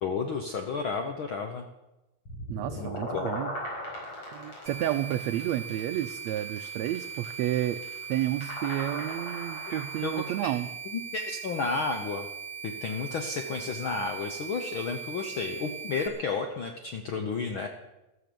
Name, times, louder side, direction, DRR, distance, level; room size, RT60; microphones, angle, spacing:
voice 1, 0.0-1.6 2.8-3.3 9.7-10.5 10.9-12.3 12.6-17.7, left 4 dB, 85° left, 5 dB, 1.1 m, -32 dB
sound 1, 2.3-10.4, left 1 dB, 40° left, 6.2 m, -39 dB
voice 2, 2.5-3.6 4.3-7.8 8.1-10.7, right 13 dB, 85° right, 9 dB, 1.5 m, -31 dB
sound 2, 4.7-16.1, right 7 dB, 35° right, 0.6 m, -40 dB
13.5 x 13.5 x 6.9 m, 0.99 s
omnidirectional pair, 3.9 m